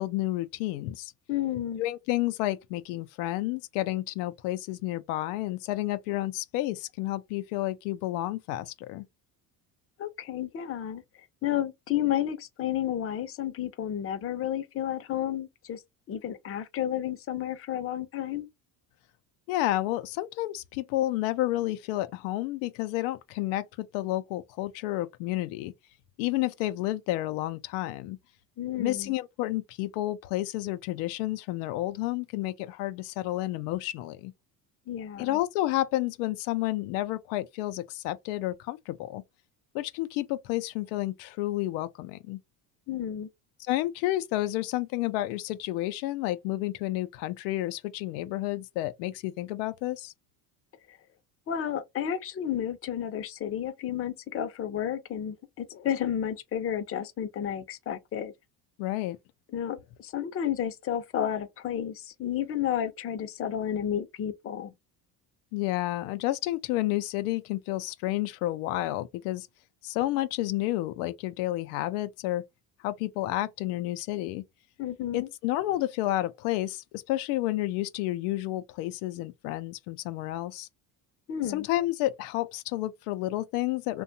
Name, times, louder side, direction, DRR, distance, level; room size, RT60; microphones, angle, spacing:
voice 1, 0.0-1.1 1.8-9.0 19.5-25.7 26.2-28.2 28.8-34.3 35.2-39.2 39.7-42.4 43.7-50.1 58.8-59.2 65.5-69.5 69.8-72.4 72.8-74.4 75.1-80.7 81.5-84.0, left 16 dB, 90° left, 0.5 m, -30 dB
voice 2, 1.3-1.8 10.0-11.0 11.4-15.8 16.1-18.5 28.6-29.1 34.9-35.4 42.9-43.3 50.9-51.0 51.5-58.3 59.5-64.7 74.8-75.3 81.3-81.7, left 10 dB, 30° left, 0.5 m, -31 dB
2.7 x 2.3 x 2.6 m
supercardioid pair, 100°, 44 cm